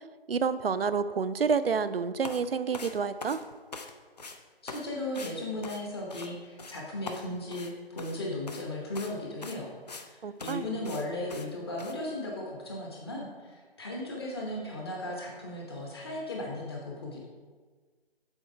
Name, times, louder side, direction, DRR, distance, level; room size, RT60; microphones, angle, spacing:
voice 1, 0.3-3.4 10.2-10.6, right 5 dB, 70° right, 13 dB, 0.5 m, -29 dB
sound 1, 2.2-2.4 2.7-3.9 4.2-4.4 4.7-4.9 5.1-5.3 5.6-6.3 6.6-6.8 7.1-8.2 8.5-8.6 8.9-9.1 9.4-10.1 10.4-10.6 10.8-11.0 11.3-11.5 11.8-11.9, left 4 dB, 45° left, 0.5 m, -42 dB
voice 2, 4.6-17.3, left 1 dB, 25° left, -2 dB, 0.9 m, -36 dB
7.2 x 4.1 x 4.7 m, 1.4 s
figure-of-eight pair, 150°, 30 cm